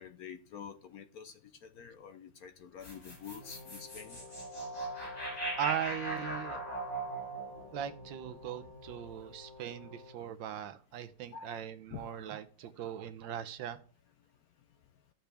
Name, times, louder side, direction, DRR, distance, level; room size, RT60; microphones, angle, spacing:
voice 1, 0.0-1.3 1.6-4.2 11.3-11.6 11.9-12.0, left 7 dB, 60° left, 1.0 m, -47 dB
sound 1, 2.8-9.1, right 2 dB, 90° left, 5.2 m, -40 dB
Brass instrument, 3.4-10.3, left 3 dB, 30° right, 2.4 m, -54 dB
voice 2, 5.6-6.6 7.7-13.8, right 10 dB, 75° right, 1.5 m, -39 dB
13.5 x 7.3 x 3.5 m
omnidirectional pair, 2.1 m